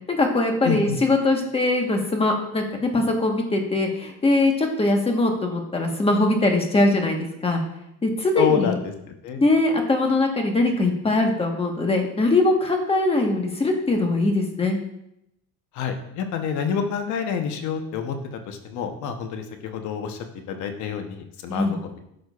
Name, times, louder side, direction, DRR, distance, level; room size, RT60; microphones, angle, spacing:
voice 1, 0.1-7.6 8.0-8.7 9.4-14.8 21.5-21.7, left 2 dB, 20° left, 2 dB, 1.3 m, -21 dB
voice 2, 0.6-1.0 8.4-8.8 9.2-9.4 15.7-20.2 20.5-22.0, left 7 dB, 65° left, 6 dB, 1.0 m, -27 dB
11.5 x 6.2 x 2.4 m, 0.81 s
cardioid pair, 130°, 31 cm